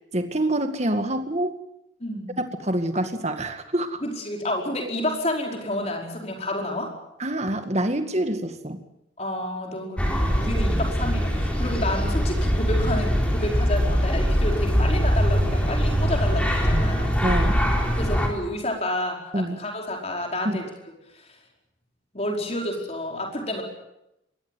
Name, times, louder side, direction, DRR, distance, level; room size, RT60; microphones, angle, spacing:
voice 1, 0.1-1.6 2.6-4.0 7.2-8.8 17.2-17.6 19.3-19.6 20.4-20.6, right 1 dB, 35° right, 7 dB, 2.0 m, -26 dB
voice 2, 2.0-2.4 4.0-6.9 9.2-17.2 18.0-20.7 21.1-21.4 22.1-23.6, left 1 dB, 30° left, 1 dB, 4.9 m, -30 dB
sound 1, 10.0-18.3, equal, 5° left, 3.9 m, -22 dB
23.0 x 18.0 x 9.1 m, 0.86 s
head